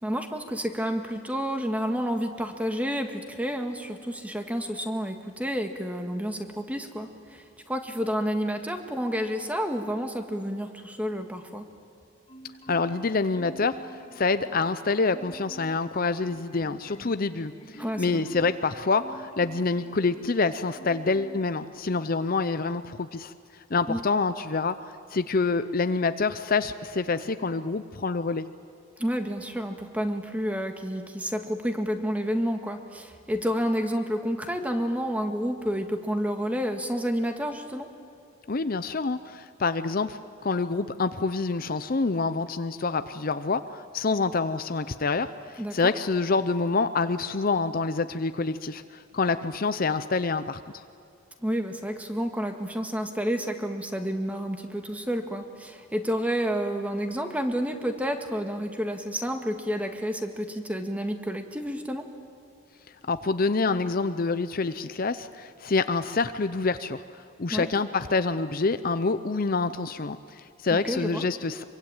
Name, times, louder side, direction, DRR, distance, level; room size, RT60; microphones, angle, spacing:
voice 1, 0.0-11.6 17.8-18.3 23.9-24.0 29.0-37.9 45.6-45.8 51.4-62.1 67.5-67.7 70.7-71.2, equal, 5° right, 5 dB, 1.8 m, -30 dB
Marimba xylophone, 12.3-13.1 13.3-14.8 15.1-15.8 16.2-20.4 20.7-21.5 21.9-22.1, right 1 dB, 25° left, 3.1 m, -48 dB
voice 2, 12.7-23.3 23.7-24.8 25.1-28.5 38.5-50.8 63.1-71.6, left 4 dB, 45° left, 11 dB, 0.6 m, -27 dB
25.0 x 24.0 x 9.0 m, 2.5 s
head